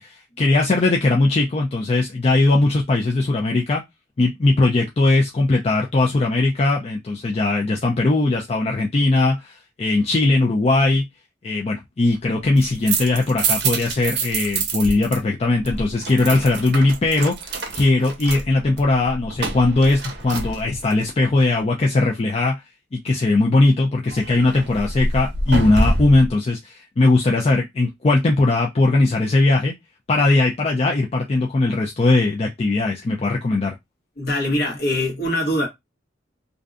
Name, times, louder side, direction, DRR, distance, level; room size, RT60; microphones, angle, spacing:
voice 1, 0.0-3.8 4.2-11.0 11.4-22.6 22.9-29.7 30.1-33.7, left 2 dB, 35° left, 0.4 m, -19 dB
sound 1, 12.4-15.2 15.4-21.0 24.1-26.3, right 3 dB, 60° right, 0.6 m, -26 dB
voice 2, 34.2-35.7, left 1 dB, 55° left, 1.0 m, -22 dB
2.6 x 2.1 x 2.4 m
head